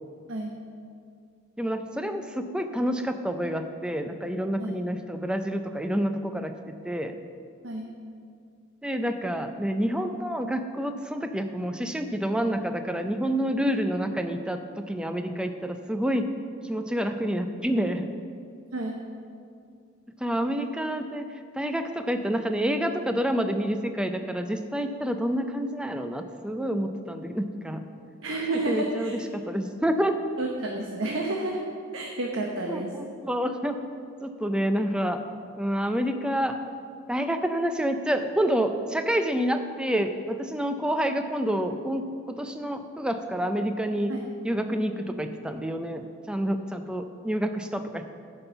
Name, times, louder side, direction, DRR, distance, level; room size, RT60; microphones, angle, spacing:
voice 1, 1.6-7.2 8.8-16.3 16.6-18.1 20.2-27.9 28.7-30.2 32.7-32.8 33.2-33.8 34.2-35.2 35.6-36.6 37.1-44.1 44.4-48.1, equal, 5° right, 7 dB, 0.4 m, -28 dB
voice 2, 28.2-29.2 30.4-31.6 31.9-32.9 44.1-44.3, right 2 dB, 65° right, 0 dB, 0.9 m, -30 dB
11.0 x 5.4 x 6.9 m, 2.3 s
head